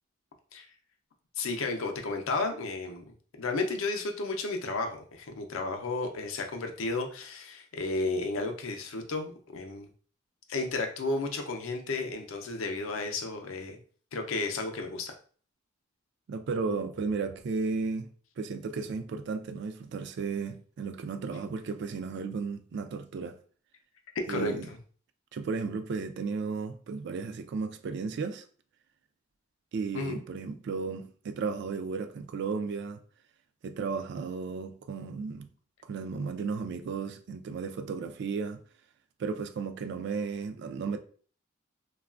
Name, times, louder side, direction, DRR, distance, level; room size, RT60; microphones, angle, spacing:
voice 1, 1.4-3.0 3.4-9.9 10.5-13.8 14.1-15.1 24.1-24.5 29.9-30.2, left 3 dB, 80° left, 0.5 m, -33 dB
voice 2, 16.3-18.1 18.4-23.4 24.3-24.7 25.3-28.4 29.7-33.0 33.6-35.5 35.9-38.6 39.2-41.0, right 4 dB, 55° right, 0.3 m, -34 dB
3.0 x 2.3 x 2.4 m
head